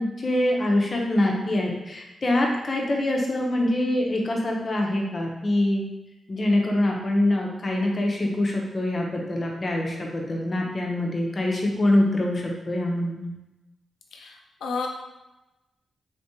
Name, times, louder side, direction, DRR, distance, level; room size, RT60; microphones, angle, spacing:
voice 1, 0.0-5.9 6.3-13.3, left 1 dB, 45° left, 0 dB, 0.8 m, -24 dB
voice 2, 14.1-14.9, left 4 dB, 80° left, 1 dB, 0.6 m, -32 dB
3.6 x 3.3 x 2.8 m, 0.99 s
cardioid pair, 65°, 0 cm